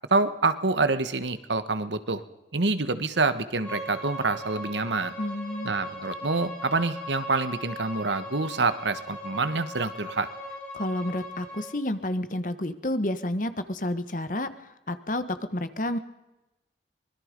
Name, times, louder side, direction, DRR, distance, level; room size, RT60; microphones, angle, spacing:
voice 1, 0.1-2.2 2.5-5.1 5.6-10.3, right 3 dB, 80° right, 12 dB, 1.4 m, -26 dB
Bowed string instrument, 3.6-11.7, left 1 dB, 10° left, 7.7 m, -39 dB
voice 2, 5.2-5.7 10.7-15.2 15.5-16.0, left 1 dB, 45° left, 11 dB, 1.3 m, -30 dB
24.5 x 21.0 x 5.3 m, 0.97 s
head